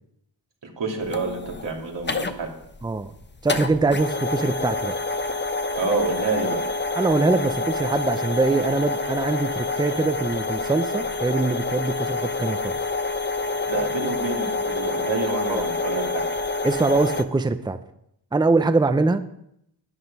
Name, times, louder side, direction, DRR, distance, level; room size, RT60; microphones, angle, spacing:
voice 1, 0.6-2.5 5.8-6.6 13.7-16.2, right 4 dB, 90° right, 0 dB, 2.8 m, -28 dB
sound 1, 1.0-17.2, left 3 dB, 25° left, 0.9 m, -27 dB
voice 2, 2.8-3.1 3.4-5.0 7.0-12.8 15.5-15.7 16.6-17.8 18.3-19.2, right 3 dB, 10° right, 10 dB, 0.6 m, -23 dB
12.0 x 9.9 x 5.4 m, 0.74 s
wide cardioid pair, 90°, 42 cm